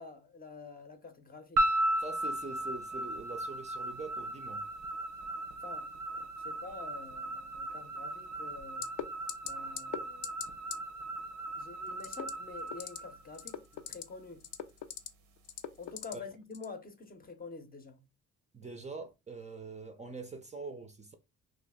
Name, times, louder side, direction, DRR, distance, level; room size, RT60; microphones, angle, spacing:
voice 1, 0.0-1.7 5.6-8.9 9.4-10.6 11.6-14.5 15.8-18.0, left 4 dB, 30° left, 0.7 m, -48 dB
sound 1, 1.6-13.9, right 1 dB, 85° right, 0.8 m, -36 dB
voice 2, 2.0-4.6 16.1-16.2 18.5-21.1, right 3 dB, 25° right, 0.5 m, -44 dB
sound 2, 8.8-9.0 9.3-9.5 9.8-10.0 10.2-10.5 10.7-10.8 12.0-12.3 12.7-13.0 13.3-14.0 14.4-15.1 15.5-16.1 16.5-16.7, left 11 dB, 75° left, 0.5 m, -38 dB
2.8 x 2.4 x 3.5 m
cardioid pair, 90°, 30 cm